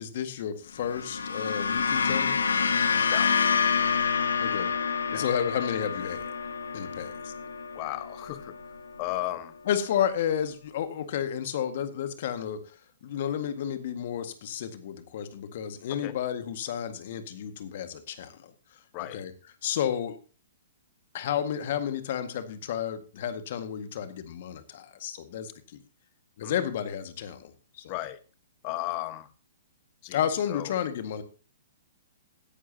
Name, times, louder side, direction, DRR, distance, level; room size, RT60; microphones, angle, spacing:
voice 1, 0.0-2.4 4.4-4.7 5.1-6.3 6.7-7.3 9.7-12.6 13.0-18.5 19.1-19.3 19.6-20.2 21.1-25.5 26.4-27.5 27.8-27.9 30.1-31.2, left 9 dB, 55° left, 10 dB, 1.8 m, -31 dB
sound 1, 0.8-9.2, left 6 dB, 75° left, 1.5 m, -28 dB
voice 2, 2.9-3.3 5.1-5.3 7.7-8.5 9.0-9.5 16.0-16.2 18.9-19.2 26.4-26.5 27.9-28.2 28.6-29.3 30.0-30.2 30.5-30.8, left 16 dB, 35° left, 14 dB, 1.1 m, -35 dB
16.0 x 11.0 x 2.9 m, 0.35 s
figure-of-eight pair, 120°, 0 cm